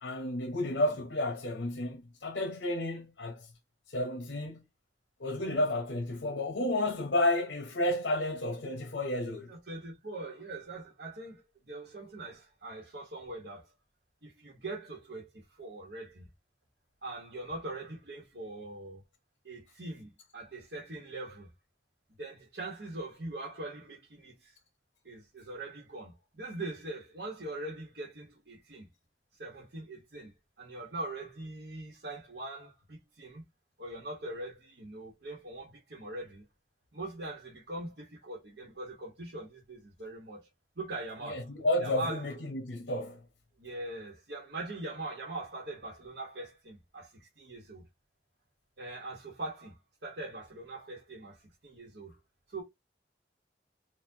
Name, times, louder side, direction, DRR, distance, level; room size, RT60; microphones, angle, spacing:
voice 1, 0.0-3.5 3.9-4.6 5.2-9.5 41.2-43.2, left 1 dB, 75° left, 0.8 m, -31 dB
voice 2, 9.5-13.7 14.2-16.3 17.0-19.0 19.4-21.5 22.2-24.6 25.0-28.9 29.4-33.4 33.8-36.4 36.9-40.5 40.8-41.5 41.8-42.3 43.6-47.9 48.8-52.1 52.5-52.6, right 2 dB, 65° right, 1.2 m, -42 dB
4.4 x 2.4 x 2.7 m
head